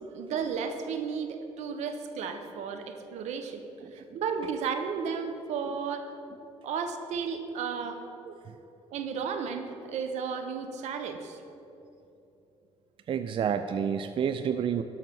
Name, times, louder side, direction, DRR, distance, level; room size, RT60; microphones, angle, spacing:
voice 1, 0.1-3.6 3.9-6.1 6.6-8.0 8.9-11.4, right 6 dB, 80° right, 7 dB, 1.0 m, -33 dB
voice 2, 13.1-14.8, right 8 dB, 50° right, 10 dB, 0.4 m, -29 dB
12.0 x 5.8 x 6.9 m, 2.8 s
cardioid pair, 105°, 11 cm